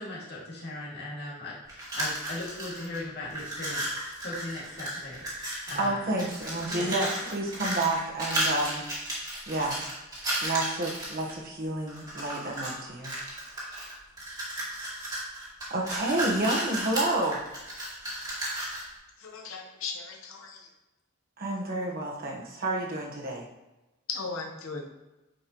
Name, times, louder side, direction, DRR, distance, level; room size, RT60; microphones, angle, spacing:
voice 1, 0.0-5.2 5.7-6.1 6.7-7.0, left 2 dB, 50° left, -5 dB, 2.3 m, -38 dB
sound 1, 1.7-3.0 3.3-5.9 6.2-11.3 11.9-12.7 13.0-18.9, right 1 dB, 20° right, 2.1 m, -34 dB
voice 2, 5.8-8.8 9.5-9.8 10.4-13.1 15.7-17.4 21.4-23.4, right 2 dB, 45° right, -2 dB, 1.2 m, -30 dB
voice 3, 19.2-20.7 24.1-24.9, left 4 dB, 75° left, 1 dB, 1.0 m, -37 dB
9.2 x 5.3 x 3.0 m, 1.0 s
head